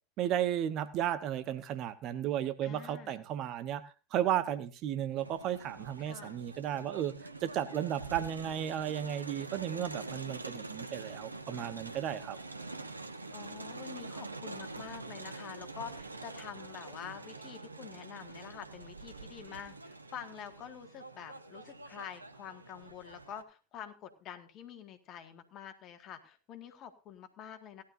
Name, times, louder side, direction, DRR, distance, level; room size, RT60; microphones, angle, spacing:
voice 1, 0.2-3.8 4.1-7.1 7.4-12.4, right 11 dB, 45° right, 12 dB, 1.0 m, -34 dB
voice 2, 2.6-3.2 6.0-6.4 13.3-27.8, left 9 dB, 40° left, 7 dB, 1.9 m, -47 dB
Crowd, 5.2-23.4, right 3 dB, 90° right, 0.9 m, -45 dB
17.5 x 11.5 x 2.7 m, 0.32 s
figure-of-eight pair, 80°, 0 cm